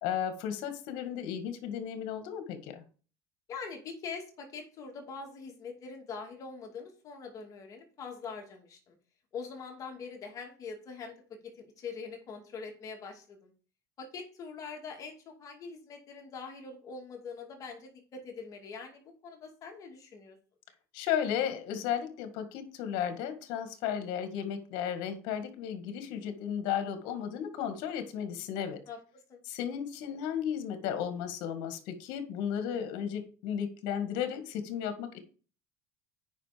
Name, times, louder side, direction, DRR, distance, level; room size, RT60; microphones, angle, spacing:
voice 1, 0.0-2.8 20.9-28.8 29.5-35.2, left 9 dB, 70° left, 8 dB, 1.8 m, -34 dB
voice 2, 3.5-9.0 9.3-11.2 11.4-13.5 14.0-20.4 28.9-29.0 29.3-29.4, left 5 dB, 40° left, 2 dB, 2.4 m, -43 dB
8.8 x 5.6 x 5.1 m, 0.39 s
supercardioid pair, 120°, 8 cm